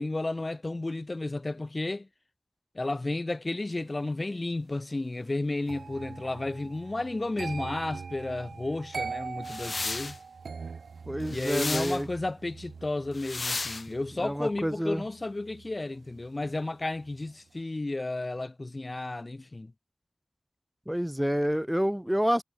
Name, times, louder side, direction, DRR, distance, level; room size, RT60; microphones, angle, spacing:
voice 1, 0.0-2.1 2.7-10.2 11.3-19.7, left 2 dB, 35° left, 2.2 m, -32 dB
sound 1, 5.7-16.6 16.9-17.3, right 5 dB, 85° right, 1.9 m, -42 dB
sound 2, 9.4-10.2 11.3-12.0 13.1-13.9, left 3 dB, 50° left, 6.4 m, -33 dB
voice 2, 11.1-12.1 14.2-15.0 20.9-22.4, equal, 5° right, 1.9 m, -28 dB
wide cardioid pair, 65°, 0 cm